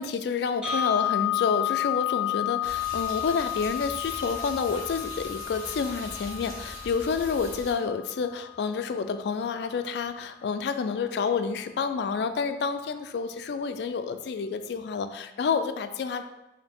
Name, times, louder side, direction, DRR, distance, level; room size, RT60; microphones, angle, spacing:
voice 1, 0.0-16.2, left 5 dB, 70° left, 9 dB, 0.3 m, -29 dB
sound 1, 0.6-8.7, left 13 dB, 5° right, 1.5 m, -31 dB
sound 2, 2.6-7.7, equal, 55° right, 1.5 m, -41 dB
4.7 x 2.7 x 3.5 m, 0.96 s
head